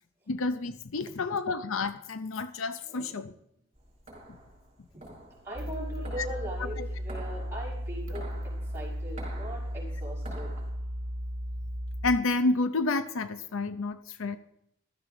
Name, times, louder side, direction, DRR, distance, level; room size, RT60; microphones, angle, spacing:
voice 1, 0.3-3.3 4.3-4.4 6.8-6.9 12.0-14.4, left 3 dB, 75° left, 11 dB, 0.7 m, -30 dB
voice 2, 2.8-3.4 4.9-5.1 5.4-10.5, equal, 10° right, -5 dB, 5.4 m, -41 dB
sound 1, 3.7-10.7, right 1 dB, 30° right, 5.2 m, -49 dB
sound 2, 5.5-12.2, equal, 70° right, 1.1 m, -35 dB
15.0 x 13.0 x 3.8 m, 0.76 s
head